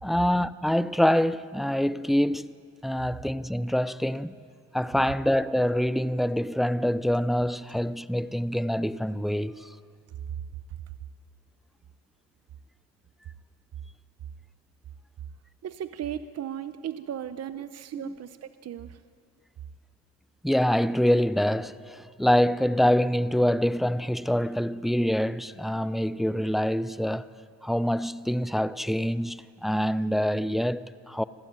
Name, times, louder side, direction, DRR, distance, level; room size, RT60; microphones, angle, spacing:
voice 1, 0.0-2.5 2.8-4.3 4.7-9.7 18.0-18.1 20.4-27.3 27.6-31.2, equal, ahead, 0.6 m, -25 dB
voice 2, 15.6-19.0, right 10 dB, 55° right, 0.9 m, -36 dB
26.0 x 15.0 x 9.5 m
cardioid pair, 90°, 30 cm